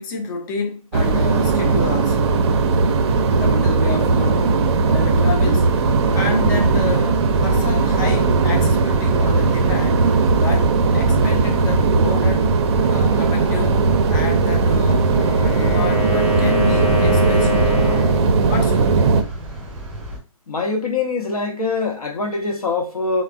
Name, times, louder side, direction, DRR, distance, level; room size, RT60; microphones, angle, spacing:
voice 1, 0.0-2.4 3.4-4.5 4.9-5.7 6.1-10.1 10.4-12.5 12.9-13.8 14.1-15.1 15.4-18.1 18.5-19.2, left 4 dB, 35° left, 0.5 m, -29 dB
sound 1, 0.9-19.2, right 4 dB, 50° right, 0.4 m, -18 dB
sound 2, 5.8-20.2, right 1 dB, 10° right, 0.7 m, -34 dB
Wind instrument woodwind instrument, 14.8-18.3, left 2 dB, 55° left, 1.1 m, -24 dB
voice 2, 20.5-23.2, left 3 dB, 85° left, 0.8 m, -23 dB
3.2 x 2.0 x 2.4 m
hypercardioid pair, 140°, 19 cm